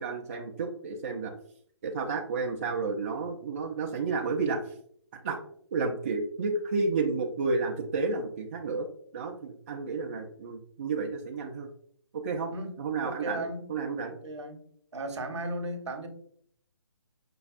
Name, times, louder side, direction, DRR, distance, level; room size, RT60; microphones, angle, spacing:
voice 1, 0.0-1.3 1.8-4.6 5.2-5.4 5.7-8.9 9.1-11.7 12.1-12.5 12.8-14.1, right 4 dB, 30° right, 1 dB, 0.3 m, -31 dB
voice 2, 13.0-13.7 14.1-14.6 14.9-16.1, right 1 dB, 70° right, 5 dB, 0.8 m, -36 dB
5.2 x 2.3 x 2.4 m, 0.63 s
figure-of-eight pair, 145°, 15 cm